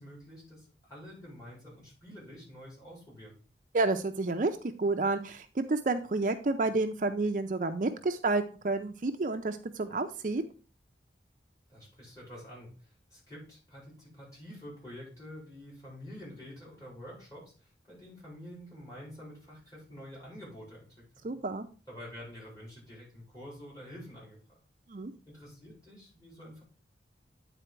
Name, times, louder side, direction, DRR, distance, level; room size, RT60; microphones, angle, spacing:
voice 1, 0.0-3.4 11.7-12.7 13.1-17.5 17.9-20.9 21.2-21.3 21.9-24.6 25.3-26.6, equal, 20° left, -5 dB, 4.6 m, -48 dB
voice 2, 3.7-10.4 21.2-21.7 24.9-25.1, right 3 dB, 45° right, 7 dB, 0.5 m, -30 dB
9.0 x 4.2 x 4.5 m, 0.38 s
head